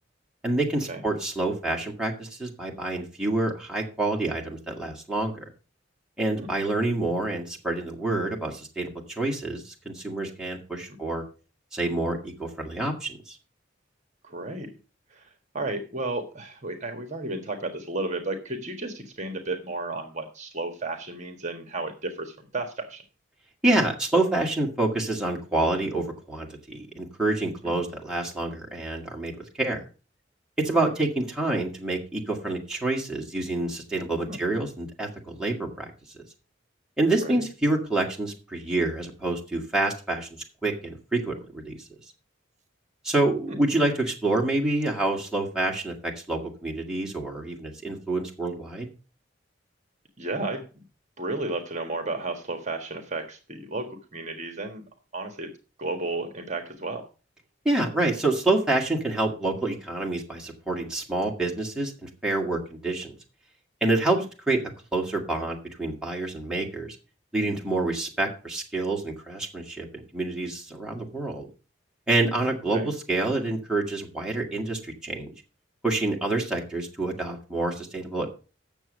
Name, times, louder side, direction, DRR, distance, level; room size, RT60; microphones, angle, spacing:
voice 1, 0.4-5.4 6.2-11.2 11.7-13.4 23.6-29.8 30.6-35.9 37.0-41.8 43.0-48.9 57.6-63.1 63.8-64.6 64.9-67.0 67.3-71.5 72.1-75.3 75.8-78.3, right 2 dB, 5° right, -1 dB, 2.1 m, -27 dB
voice 2, 14.2-14.8 15.1-15.3 15.5-23.0 27.6-27.8 34.3-34.4 37.2-37.4 43.5-43.6 50.2-50.6 51.2-54.8 55.1-55.5 55.8-57.0 64.1-64.2 72.7-72.9, right 2 dB, 40° right, 6 dB, 1.5 m, -33 dB
8.9 x 7.0 x 6.4 m, 0.34 s
head